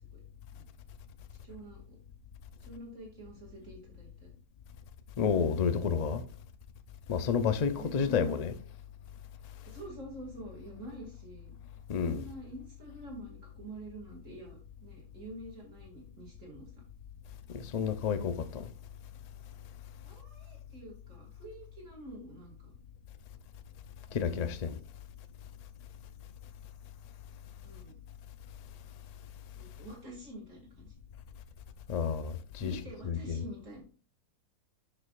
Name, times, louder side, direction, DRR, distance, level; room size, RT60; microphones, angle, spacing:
voice 1, 1.4-2.0 2.6-4.3 7.8-8.6 9.6-11.6 12.0-16.7 20.0-22.8 24.1-24.3 27.6-28.0 29.6-30.9 32.6-33.8, right 1 dB, 55° right, 2.6 m, -47 dB
voice 2, 5.2-6.2 7.1-8.6 11.9-12.2 17.5-18.6 24.1-24.8 31.9-32.8 33.0-33.4, left 6 dB, 70° left, 0.3 m, -30 dB
9.7 x 6.2 x 2.4 m
omnidirectional pair, 1.6 m